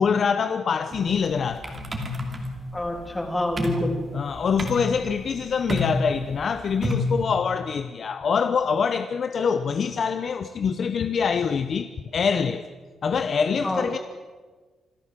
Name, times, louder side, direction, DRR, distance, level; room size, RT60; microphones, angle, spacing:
voice 1, 0.0-1.8 4.1-12.6 13.0-14.0, left 6 dB, 40° left, 0.7 m, -25 dB
sound 1, 0.9-7.2, left 1 dB, 20° right, 2.6 m, -30 dB
voice 2, 2.7-3.9 13.6-14.0, left 1 dB, 10° left, 3.1 m, -27 dB
26.0 x 14.0 x 7.6 m
wide cardioid pair, 170°, 0 cm